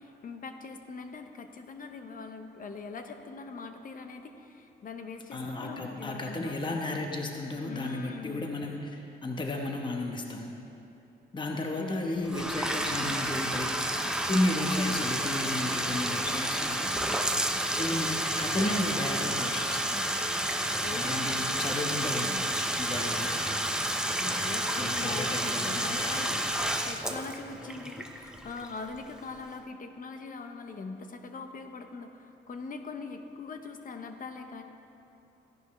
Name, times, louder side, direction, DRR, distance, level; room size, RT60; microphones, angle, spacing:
voice 1, 0.0-6.8 7.7-8.6 11.8-12.5 20.8-21.7 22.0-22.5 24.1-34.6, left 4 dB, 45° left, 6 dB, 0.9 m, -42 dB
voice 2, 5.3-10.5 11.3-13.7 14.3-16.9 17.8-20.1 20.9-23.3 24.8-26.4, left 2 dB, 25° left, 2 dB, 1.0 m, -33 dB
Bathtub (filling or washing), 12.2-29.0, right 1 dB, 5° right, 0.7 m, -30 dB
14.5 x 10.5 x 3.2 m, 2.9 s
cardioid pair, 90°, 20 cm